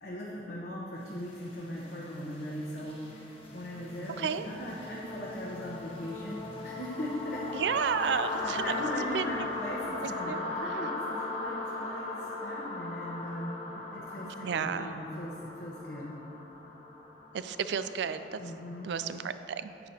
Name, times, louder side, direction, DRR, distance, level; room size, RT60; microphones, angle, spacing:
voice 1, 0.0-7.5 8.4-16.2 18.4-18.9, equal, 70° left, -5 dB, 1.0 m, -39 dB
sound 1, 1.1-18.9, left 2 dB, 35° left, 1.1 m, -39 dB
voice 2, 7.5-8.6 9.1-9.3 10.0-10.9 14.2-14.9 17.3-18.4 18.8-19.7, right 7 dB, 80° right, 11 dB, 0.4 m, -32 dB
9.7 x 9.1 x 2.9 m, 3.0 s
head